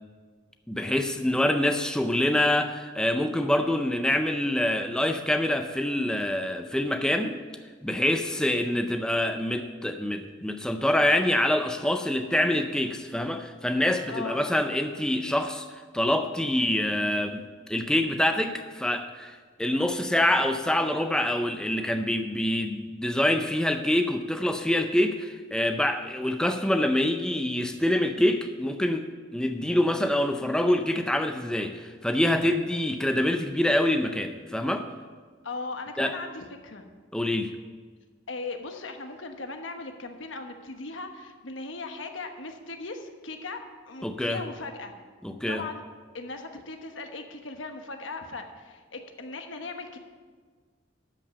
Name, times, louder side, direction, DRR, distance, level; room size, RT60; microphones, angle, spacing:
voice 1, 0.7-7.4 7.8-15.7 15.9-17.4 17.7-34.9 36.0-36.1 37.1-37.5 44.0-44.4 45.2-45.6, left 1 dB, 5° left, 6 dB, 0.4 m, -26 dB
voice 2, 14.1-14.5 35.4-36.9 38.3-43.6 43.9-44.9 45.5-45.8 46.1-50.0, left 3 dB, 90° left, 5 dB, 1.1 m, -38 dB
12.5 x 5.6 x 6.9 m, 1.5 s
head